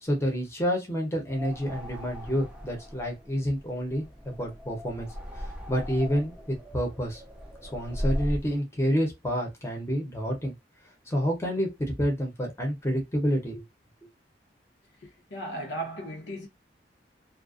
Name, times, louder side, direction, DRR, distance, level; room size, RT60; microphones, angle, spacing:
voice 1, 0.0-5.1 5.4-7.2 7.6-10.5 11.1-13.6, equal, 15° left, 0.7 m, -29 dB
sound 1, 1.3-8.6, equal, 5° right, 0.4 m, -38 dB
voice 2, 15.0-16.5, right 1 dB, 80° left, 0.8 m, -36 dB
2.4 x 2.1 x 2.4 m
head